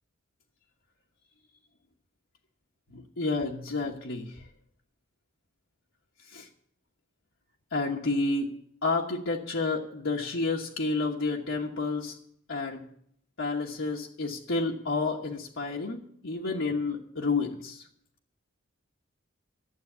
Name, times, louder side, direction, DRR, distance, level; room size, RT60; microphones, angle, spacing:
voice 1, 2.9-4.4 6.3-6.5 7.7-8.5 8.8-12.1 12.5-12.8 13.4-17.9, left 3 dB, 70° left, -2 dB, 1.2 m, -30 dB
12.5 x 7.8 x 8.1 m, 0.68 s
head